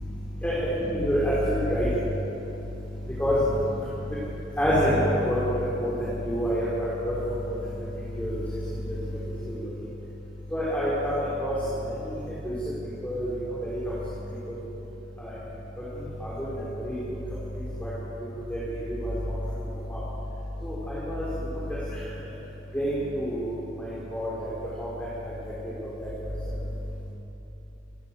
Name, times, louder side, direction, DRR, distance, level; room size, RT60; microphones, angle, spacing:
voice 1, 0.4-1.9 3.2-3.4 4.6-5.9 6.2-6.7 7.0-7.2 7.5-7.6 8.2-8.4 8.9-9.0 9.5-9.7 10.5-11.1 11.4-11.5 11.8-12.2 12.4-12.5 13.0-13.3 13.6-13.8 14.5-14.6 15.2-15.3 16.2-17.0 17.8-17.9 18.5-19.3 19.9-20.0 20.6-21.2 21.5-21.6 22.7-24.5 24.8-25.1 25.4-25.5 26.0-26.1, equal, 10° left, -9 dB, 4.5 m, -27 dB
27.0 x 14.0 x 7.7 m, 3.0 s
head